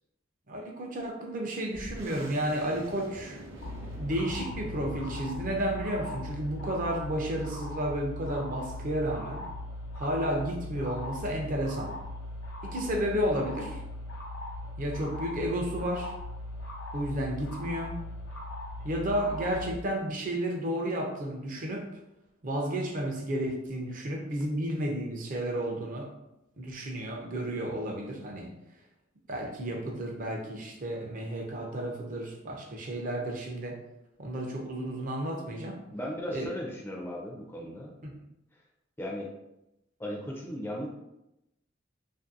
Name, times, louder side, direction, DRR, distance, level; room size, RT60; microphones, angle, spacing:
voice 1, 0.5-3.4 4.0-9.5 10.0-11.9 12.6-13.8 14.8-16.1 16.9-18.0 18.8-21.8 22.4-26.1 26.6-28.5 29.3-33.8 34.2-35.8 36.3-36.5 38.0-38.1, right 1 dB, 45° right, 1 dB, 0.5 m, -32 dB
sound 1, 1.7-10.9, right 1 dB, 85° right, 0.6 m, -48 dB
sound 2, 3.6-19.8, left 1 dB, 80° left, 0.7 m, -39 dB
voice 2, 35.9-37.9 39.0-39.3 40.0-40.9, equal, 10° left, -2 dB, 0.4 m, -36 dB
2.6 x 2.6 x 2.5 m, 0.89 s
head